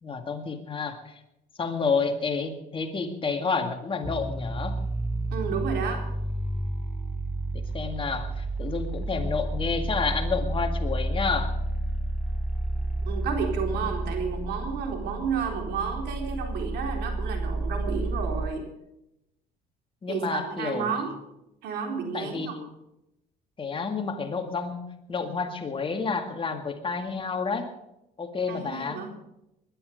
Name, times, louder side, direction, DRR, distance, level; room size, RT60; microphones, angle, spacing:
voice 1, 0.0-1.2 1.6-4.8 7.5-11.6 20.0-20.9 22.1-22.7 23.6-27.7 28.2-29.0, left 4 dB, 30° left, 5 dB, 2.0 m, -30 dB
sound 1, 4.0-18.5, right 1 dB, 5° right, 0.5 m, -30 dB
voice 2, 5.3-6.0 13.0-18.7 20.1-21.1 21.6-22.6 28.5-29.1, right 6 dB, 80° right, 3 dB, 4.0 m, -31 dB
20.5 x 11.5 x 5.2 m, 0.87 s
cardioid pair, 110°, 17 cm